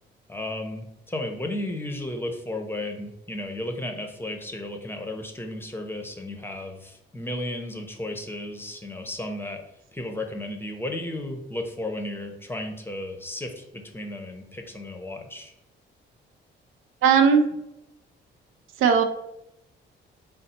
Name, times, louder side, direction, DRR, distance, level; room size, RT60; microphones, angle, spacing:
voice 1, 0.3-9.6 9.9-15.5, left 1 dB, 10° left, 3 dB, 0.6 m, -34 dB
voice 2, 17.0-17.5 18.8-19.0, right 6 dB, 90° right, 6 dB, 0.5 m, -17 dB
4.0 x 2.0 x 4.2 m, 0.84 s
cardioid pair, 90°, 20 cm